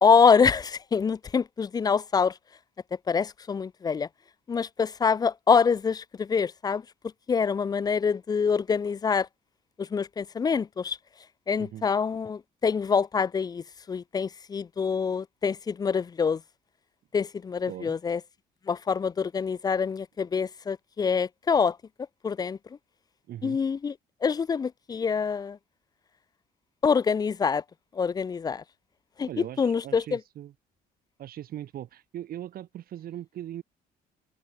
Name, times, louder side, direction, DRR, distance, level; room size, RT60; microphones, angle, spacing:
voice 1, 0.0-2.3 3.1-4.1 4.5-6.8 7.3-9.3 9.8-11.0 11.5-16.4 17.1-18.2 18.7-21.8 22.2-22.6 23.4-23.9 24.2-25.6 26.8-27.6 27.9-28.6 29.2-30.2, left 6 dB, 25° left, 0.4 m, -25 dB
voice 2, 23.3-23.6 29.3-30.5 31.2-33.6, right 12 dB, 60° right, 2.8 m, -39 dB
cardioid pair, 110°, 17 cm